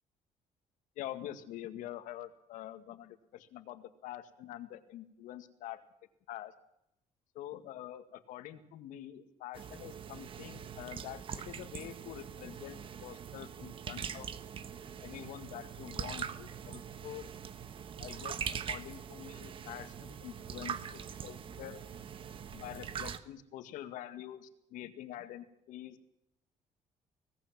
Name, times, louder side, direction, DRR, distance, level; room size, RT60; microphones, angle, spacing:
voice 1, 1.0-5.8 6.3-6.5 7.3-14.3 15.0-17.3 18.0-18.4 18.7-21.8 22.5-26.0, left 12 dB, 90° left, 9 dB, 2.1 m, -46 dB
sound 1, 9.5-23.2, right 7 dB, 40° right, 1.4 m, -43 dB
25.0 x 18.0 x 7.6 m, 0.79 s
cardioid pair, 140°, 13 cm